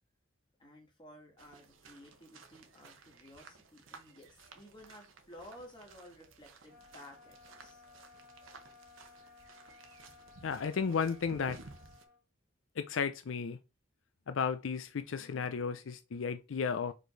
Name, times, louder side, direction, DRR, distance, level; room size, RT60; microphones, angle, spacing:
voice 1, 0.6-7.8, equal, 25° left, 2.2 m, -54 dB
sound 1, 1.4-12.0, right 3 dB, 80° right, 1.1 m, -56 dB
sound 2, 6.7-12.2, left 4 dB, 40° right, 2.2 m, -58 dB
voice 2, 10.4-11.6 12.8-13.6 14.3-16.9, left 6 dB, 80° left, 0.5 m, -34 dB
5.0 x 4.4 x 4.6 m
head